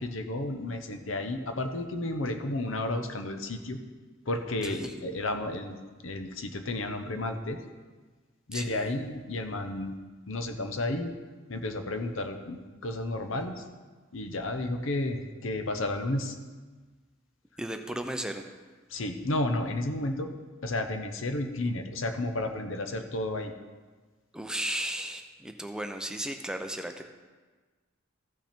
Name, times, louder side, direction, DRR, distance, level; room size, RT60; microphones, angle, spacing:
voice 1, 0.0-3.8 4.3-7.6 8.5-10.0 10.3-11.1 11.5-13.6 14.1-16.4 18.9-20.3 20.6-23.5, left 2 dB, 75° left, 6 dB, 0.9 m, -32 dB
voice 2, 4.6-4.9 8.5-8.9 17.6-18.4 24.3-27.1, right 1 dB, 5° right, 5 dB, 0.5 m, -35 dB
14.5 x 5.9 x 4.4 m, 1.4 s
head